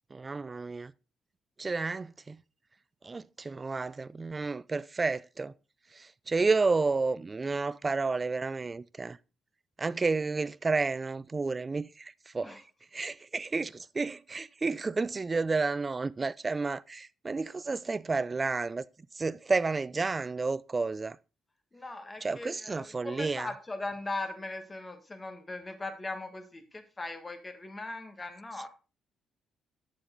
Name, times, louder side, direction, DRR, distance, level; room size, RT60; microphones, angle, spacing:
voice 1, 0.1-0.9 1.6-2.4 3.0-5.5 5.9-9.2 9.8-12.6 12.9-18.8 19.1-21.2 22.2-23.5, right 3 dB, 25° right, 0.4 m, -31 dB
voice 2, 21.7-28.7, left 2 dB, 25° left, 1.7 m, -39 dB
9.2 x 6.9 x 3.8 m
cardioid pair, 90°, 0 cm